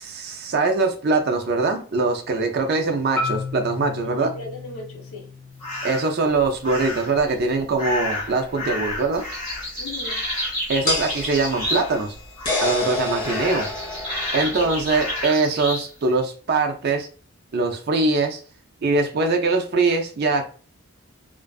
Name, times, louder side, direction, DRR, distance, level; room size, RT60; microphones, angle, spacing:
voice 1, 0.0-4.3 5.8-9.2 10.7-12.1 12.6-13.7 14.3-17.1 17.5-18.4 18.8-20.4, right 3 dB, 45° right, 0.4 m, -22 dB
Marimba xylophone, 3.2-7.3, left 3 dB, 5° left, 0.5 m, -34 dB
voice 2, 4.0-5.3 9.8-10.3 14.6-14.8, left 2 dB, 75° left, 0.7 m, -38 dB
sound 1, 5.6-6.2 6.6-7.2 7.8-12.1 12.4-12.9 13.2-15.9, left 1 dB, 20° left, 1.4 m, -30 dB
sound 2, 6.4-6.5 8.9-9.0 10.9-15.2, left 2 dB, 40° left, 0.9 m, -29 dB
2.5 x 2.3 x 2.2 m
head